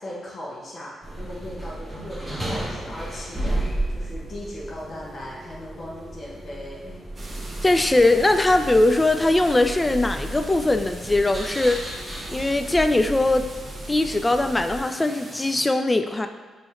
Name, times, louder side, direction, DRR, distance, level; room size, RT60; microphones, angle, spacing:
voice 1, 0.0-7.1, left 1 dB, 50° left, -5 dB, 1.1 m, -38 dB
sound 1, 1.0-14.8, right 1 dB, 10° right, 1.3 m, -33 dB
sound 2, 7.2-15.7, right 1 dB, 35° right, 1.3 m, -41 dB
voice 2, 7.6-13.5 13.9-16.3, left 2 dB, 20° left, 8 dB, 0.4 m, -21 dB
5.3 x 3.1 x 3.2 m, 1.3 s
hypercardioid pair, 45°, 0 cm